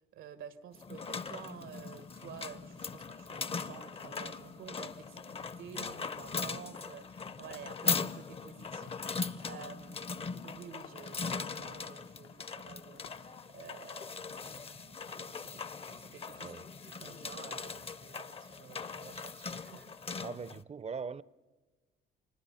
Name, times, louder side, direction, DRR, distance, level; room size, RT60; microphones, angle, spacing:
voice 1, 0.0-16.5 16.8-20.2, right 8 dB, 90° right, 1.5 m, -51 dB
sound 1, 0.7-20.6, left 5 dB, 30° left, 0.6 m, -40 dB
sound 2, 1.9-13.2, left 9 dB, 85° left, 0.9 m, -61 dB
voice 2, 20.2-21.2, right 5 dB, 35° right, 0.5 m, -40 dB
24.5 x 20.5 x 5.6 m
cardioid pair, 90°, 20 cm